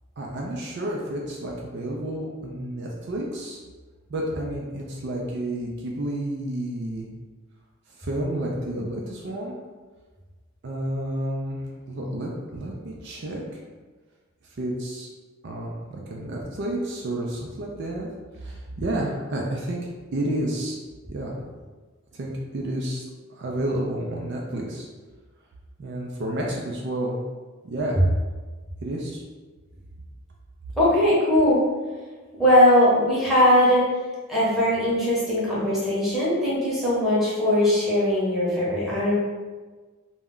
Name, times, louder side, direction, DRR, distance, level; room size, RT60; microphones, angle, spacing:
voice 1, 0.2-3.6 4.1-7.1 8.0-9.5 10.6-11.6 11.9-13.4 14.6-15.1 15.4-18.1 18.4-19.8 20.1-20.8 21.1-21.4 22.1-23.0 23.3-24.9 25.8-27.2 27.6-28.0 28.8-29.2, right 1 dB, 55° right, -2 dB, 0.4 m, -30 dB
voice 2, 30.8-31.6 32.4-33.8 34.3-39.2, left 1 dB, ahead, -9 dB, 0.8 m, -20 dB
2.2 x 2.1 x 3.6 m, 1.4 s
head